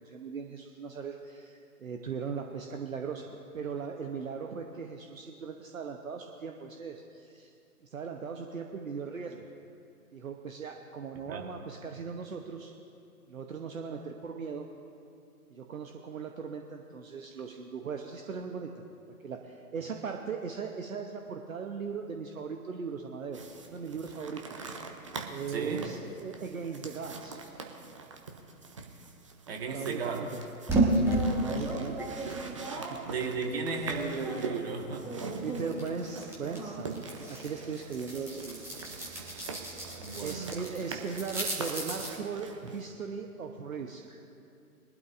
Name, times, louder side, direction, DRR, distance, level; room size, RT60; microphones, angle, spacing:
voice 1, 0.0-7.5 7.8-9.5 10.1-12.7 13.3-14.7 15.5-18.8 19.2-23.4 23.7-24.6 25.3-27.4 29.7-30.4 31.3-32.2 32.7-33.0 35.4-38.6 40.0-44.2, right 5 dB, 60° right, 3 dB, 1.0 m, -38 dB
sound 1, 23.3-42.9, right 4 dB, 20° right, 0.6 m, -44 dB
voice 2, 25.5-25.9 29.5-30.2 32.2-32.4 33.1-35.2 40.0-40.5, right 4 dB, 40° right, 2 dB, 1.7 m, -35 dB
sound 2, 30.7-34.6 34.9-42.2, right 2 dB, 5° right, 1.2 m, -33 dB
21.5 x 12.0 x 2.6 m, 2.6 s
figure-of-eight pair, 130°, 46 cm